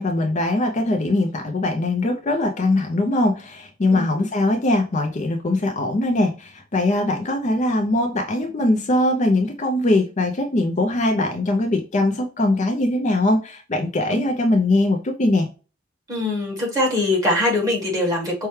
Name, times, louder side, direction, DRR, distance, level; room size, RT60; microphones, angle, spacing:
voice 1, 0.0-15.5, left 2 dB, 35° left, 0.5 m, -21 dB
voice 2, 16.1-18.5, left 2 dB, 15° right, 1.6 m, -22 dB
5.6 x 2.2 x 3.1 m
head